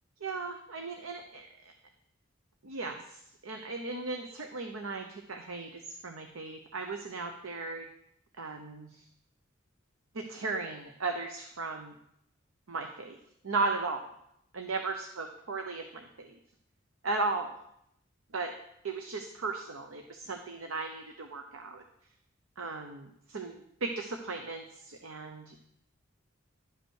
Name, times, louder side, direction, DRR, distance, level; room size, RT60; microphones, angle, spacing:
voice 1, 0.2-1.7 2.6-7.9 8.4-9.0 10.1-11.9 12.7-13.2 13.4-14.1 14.5-16.3 17.0-17.5 18.3-18.5 18.8-21.8 22.6-25.5, right 3 dB, 85° right, 4 dB, 0.9 m, -36 dB
11.5 x 5.4 x 6.5 m, 0.76 s
head